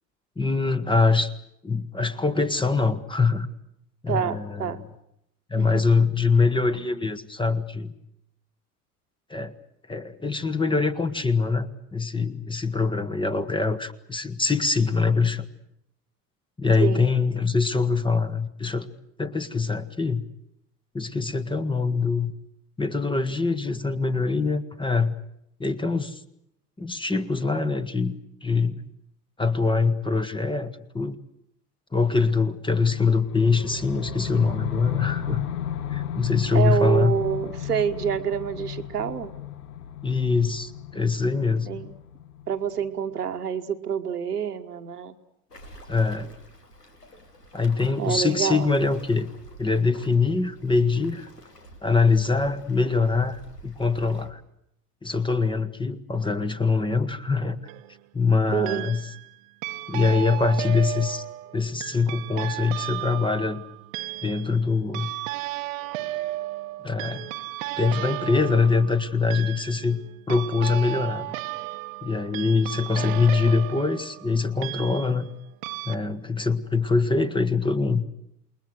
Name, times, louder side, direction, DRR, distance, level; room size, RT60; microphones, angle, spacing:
voice 1, 0.4-1.3 1.6-3.5 4.0-4.8 5.5-7.9 9.3-9.5 9.9-15.4 16.6-18.9 19.2-20.2 20.9-22.3 22.8-25.1 25.6-26.2 26.8-28.8 29.4-31.2 31.9-35.4 35.9-37.2 40.0-41.7 45.9-46.3 47.5-49.3 49.6-51.3 51.8-54.4 55.0-57.6 58.1-59.0 59.9-61.2 61.5-63.6 64.2-65.1 66.8-67.3 67.8-70.0 70.3-71.4 72.0-75.3 75.8-78.0, left 4 dB, 10° left, 11 dB, 1.3 m, -23 dB
voice 2, 4.1-4.8 5.6-5.8 16.8-17.1 36.5-39.3 41.7-42.0 42.5-45.1 48.0-48.7 58.5-58.8, right 8 dB, 75° right, 7 dB, 1.6 m, -27 dB
sound 1, 32.9-42.9, left 10 dB, 70° left, 1.3 m, -34 dB
Waves surf, 45.5-54.3, equal, 85° left, 2.8 m, -48 dB
sound 2, 57.3-57.9 58.7-59.3 59.6-75.3 75.6-76.0, right 17 dB, 55° right, 1.2 m, -34 dB
28.5 x 21.0 x 7.9 m, 0.77 s
figure-of-eight pair, 70°, 47 cm